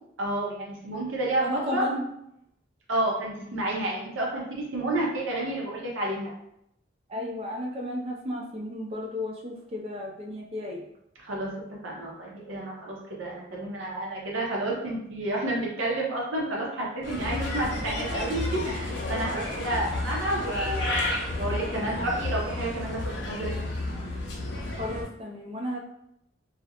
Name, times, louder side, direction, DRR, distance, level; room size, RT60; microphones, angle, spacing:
voice 1, 0.2-1.9 2.9-6.3 11.2-11.5 11.8-23.0 23.3-23.5, right 1 dB, 85° right, -3 dB, 0.6 m, -30 dB
voice 2, 1.4-2.0 7.1-10.8 24.8-25.8, left 1 dB, 30° right, -1 dB, 0.3 m, -33 dB
Bird, 17.0-25.0, left 2 dB, 65° left, 0.5 m, -31 dB
2.4 x 2.0 x 2.8 m, 0.78 s
head